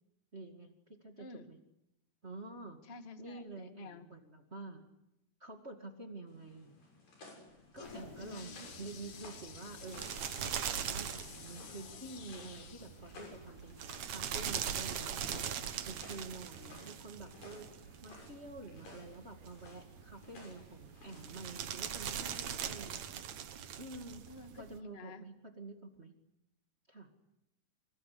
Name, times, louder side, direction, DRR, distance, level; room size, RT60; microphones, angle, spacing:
voice 1, 0.3-1.6 2.2-2.8 3.2-4.8 5.4-6.7 7.7-10.1 10.4-23.3 23.8-24.2 24.6-26.1 26.9-27.1, right 2 dB, 20° right, 4 dB, 2.1 m, -48 dB
voice 2, 1.2-1.5 2.8-4.1 8.2-9.1 24.3-25.2, left 3 dB, 25° left, 8 dB, 1.3 m, -51 dB
sound 1, 6.3-21.4, left 2 dB, 85° left, 8.8 m, -57 dB
Toilet flush, 7.5-16.9, left 6 dB, 50° left, 2.2 m, -53 dB
sound 2, 7.8-24.8, right 9 dB, 60° right, 2.4 m, -42 dB
26.0 x 25.0 x 8.5 m, 0.85 s
omnidirectional pair, 3.9 m